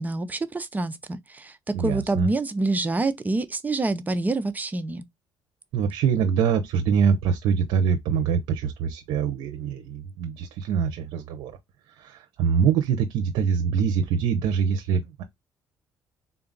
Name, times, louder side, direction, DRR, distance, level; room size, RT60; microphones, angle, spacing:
voice 1, 0.0-5.1, right 2 dB, 20° right, 0.6 m, -27 dB
voice 2, 1.7-2.3 5.7-11.5 12.0-15.2, right 7 dB, 85° right, 0.6 m, -24 dB
3.7 x 2.3 x 3.8 m
cardioid pair, 85°, 8 cm